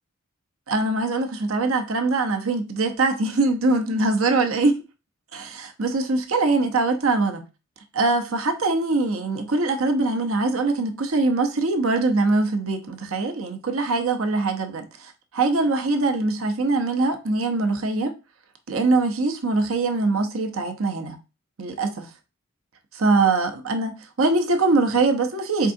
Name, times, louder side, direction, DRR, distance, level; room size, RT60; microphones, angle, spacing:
voice 1, 0.7-4.8 5.3-7.4 7.9-18.1 18.7-21.2 21.6-22.1 22.9-25.7, right 3 dB, 75° right, 0.8 m, -22 dB
4.6 x 3.6 x 2.6 m
head